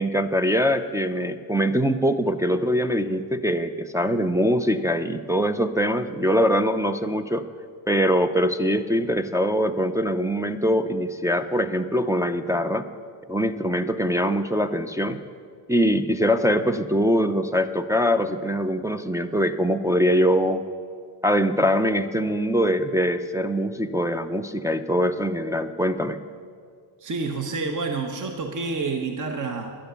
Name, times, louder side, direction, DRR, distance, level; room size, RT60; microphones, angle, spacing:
voice 1, 0.0-7.5 7.9-12.9 13.3-15.2 15.7-20.6 21.2-26.2, equal, 5° right, 5 dB, 0.4 m, -23 dB
voice 2, 27.0-29.7, right 4 dB, 40° right, 4 dB, 0.9 m, -28 dB
11.5 x 10.5 x 6.8 m, 2.1 s
cardioid pair, 100°, 49 cm